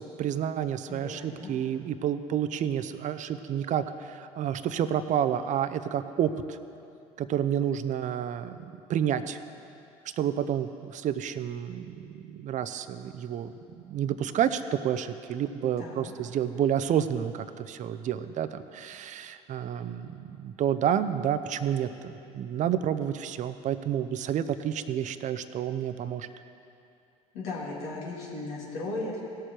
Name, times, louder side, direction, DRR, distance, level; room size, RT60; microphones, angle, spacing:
voice 1, 0.0-6.6 7.2-9.4 10.2-13.5 13.8-26.3, right 9 dB, 50° right, 11 dB, 0.6 m, -30 dB
voice 2, 0.9-1.5 15.8-16.1 27.3-29.2, left 2 dB, 70° left, -5 dB, 3.2 m, -36 dB
17.5 x 6.8 x 4.5 m, 2.6 s
hypercardioid pair, 65°, 17 cm